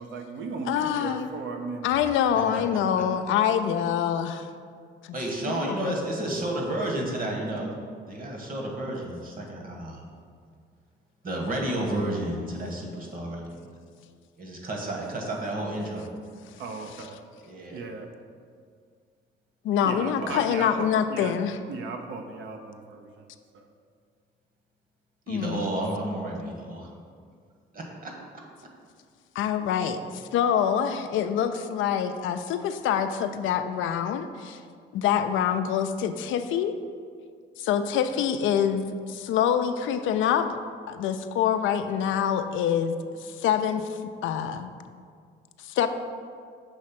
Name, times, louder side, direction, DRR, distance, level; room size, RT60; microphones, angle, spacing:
voice 1, 0.0-2.0 16.6-17.2 17.7-18.1 19.8-21.3 21.7-23.7, right 4 dB, 75° right, 0.6 m, -36 dB
voice 2, 0.7-1.3 1.8-4.5 5.0-5.2 5.5-6.0 19.6-21.6 25.3-25.6 29.4-34.6 34.9-36.7 37.6-40.6 40.9-42.9 43.2-44.7 45.6-45.9, left 8 dB, 80° left, 0.4 m, -26 dB
voice 3, 5.1-7.7 8.1-10.0 11.2-13.4 14.4-16.0 17.4-17.8 25.3-26.9 27.7-28.1, right 1 dB, 45° right, 1.3 m, -31 dB
6.3 x 3.2 x 5.8 m
cardioid pair, 90°, 20 cm